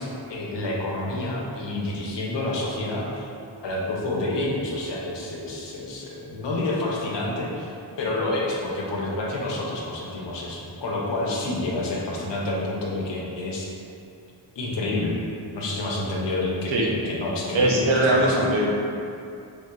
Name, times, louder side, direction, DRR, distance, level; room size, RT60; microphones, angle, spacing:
voice 1, 0.0-3.3 3.6-13.7 14.6-15.2 15.5-18.5, left 2 dB, 65° left, -3 dB, 0.6 m, -28 dB
voice 2, 17.5-18.7, right 1 dB, 85° right, -2 dB, 0.6 m, -20 dB
3.2 x 2.7 x 2.3 m, 2.6 s
wide cardioid pair, 90°, 45 cm